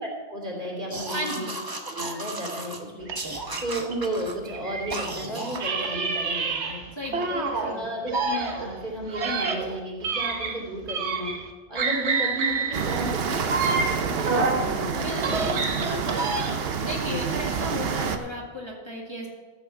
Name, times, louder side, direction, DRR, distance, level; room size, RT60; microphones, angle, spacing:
voice 1, 0.0-1.4 1.8-3.1 3.6-6.8 7.3-7.4 7.7-11.3 11.7-16.2 17.0-17.3, equal, 45° right, -2 dB, 3.2 m, -33 dB
sound 1, 0.9-2.8 3.1-4.4 4.9-5.7, right 2 dB, 20° right, 0.9 m, -34 dB
voice 2, 1.1-1.5 7.0-7.3 7.6-7.8 15.0-15.5 15.9-16.4 16.8-19.3, equal, 25° left, -3 dB, 1.8 m, -34 dB
sound 2, 3.0-5.1 5.5-7.7 8.1-11.5 11.7-14.7 15.1-16.8, right 4 dB, 80° right, 1.4 m, -28 dB
sound 3, 12.7-18.2, right 6 dB, 65° right, 1.0 m, -28 dB
14.0 x 6.0 x 7.0 m, 1.4 s
omnidirectional pair, 1.1 m